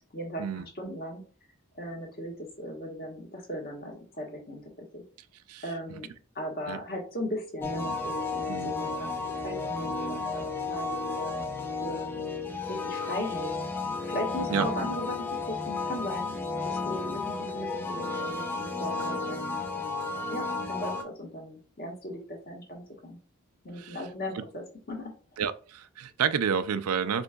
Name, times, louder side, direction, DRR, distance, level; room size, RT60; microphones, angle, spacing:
voice 1, 0.1-1.2 1.7-5.0 5.6-6.1 6.3-9.1 9.4-11.4 11.8-12.1 12.7-13.5 14.1-16.3 16.6-23.2 23.6-25.4, equal, 45° left, 1.4 m, -38 dB
sound 1, 7.6-21.0, left 3 dB, 10° left, 0.5 m, -33 dB
voice 2, 25.4-27.2, right 7 dB, 85° right, 0.4 m, -29 dB
5.0 x 3.7 x 2.3 m
head